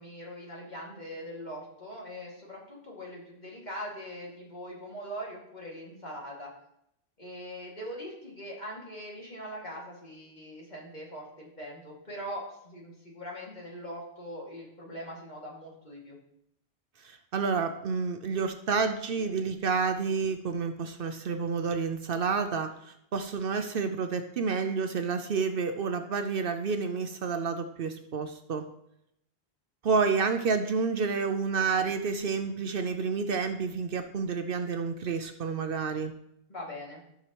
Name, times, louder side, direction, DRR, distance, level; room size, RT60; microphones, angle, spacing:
voice 1, 0.0-6.5 7.2-16.2 30.2-30.3 36.5-37.0, equal, 45° left, -4 dB, 2.4 m, -41 dB
voice 2, 17.0-28.7 29.8-36.1, right 5 dB, 65° right, 8 dB, 0.8 m, -29 dB
14.0 x 6.1 x 3.0 m, 0.77 s
omnidirectional pair, 1.1 m